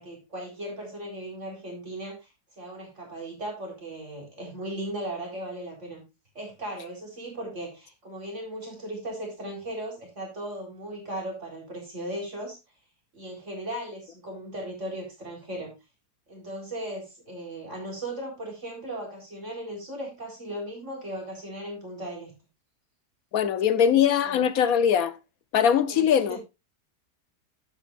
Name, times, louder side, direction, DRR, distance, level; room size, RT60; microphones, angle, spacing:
voice 1, 0.0-2.2 2.6-6.0 6.3-12.6 13.1-15.7 16.3-22.3 24.3-24.4 25.9-26.4, right 1 dB, 45° right, 4.7 m, -37 dB
voice 2, 23.3-25.2 25.5-26.4, left 8 dB, 65° left, 1.2 m, -21 dB
11.5 x 8.8 x 2.5 m
omnidirectional pair, 1.8 m